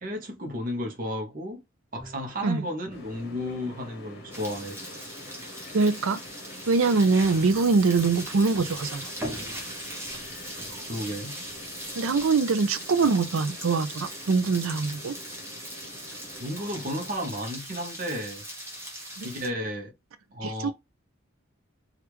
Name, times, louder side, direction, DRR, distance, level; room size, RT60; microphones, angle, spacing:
voice 1, 0.0-1.6 1.9-4.8 10.9-11.3 16.4-18.4 19.2-19.9 20.3-20.7, equal, 40° right, 0.8 m, -33 dB
Bowed string instrument, 2.0-2.9, equal, 5° left, 0.5 m, -48 dB
sound 1, 2.9-17.2, left 1 dB, 50° left, 0.9 m, -47 dB
sound 2, 4.3-19.5, equal, 10° right, 0.9 m, -39 dB
voice 2, 5.7-6.2 6.7-9.1 12.0-15.2 19.2-19.3 20.4-20.7, right 4 dB, 75° right, 0.5 m, -23 dB
3.4 x 2.4 x 3.0 m
head